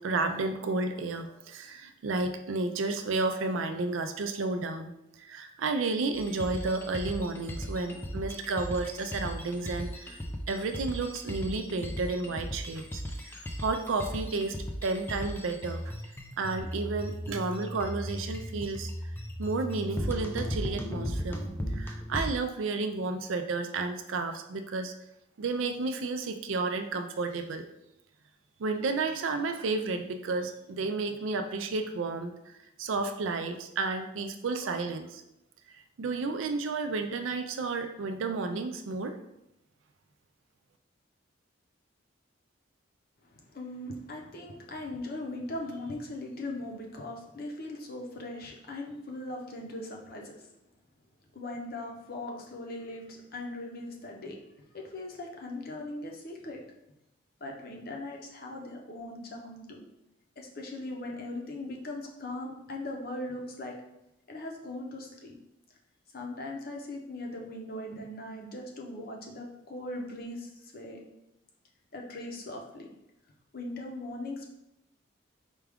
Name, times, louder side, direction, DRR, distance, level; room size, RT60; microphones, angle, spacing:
voice 1, 0.0-4.9 5.2-10.2 10.5-14.6 14.8-15.9 16.4-18.9 19.4-21.4 21.7-24.9 25.4-27.6 28.6-35.2 36.0-39.2, right 3 dB, 75° right, 7 dB, 0.4 m, -32 dB
sound 1, 6.1-22.3, equal, 10° left, 0.3 m, -37 dB
voice 2, 43.5-50.3 51.3-54.4 54.7-56.6 57.4-59.8 60.4-63.7 64.3-65.4 66.1-71.0 71.9-72.9 73.5-74.5, left 1 dB, 45° left, 0 dB, 0.6 m, -39 dB
4.7 x 2.3 x 3.5 m, 0.85 s
head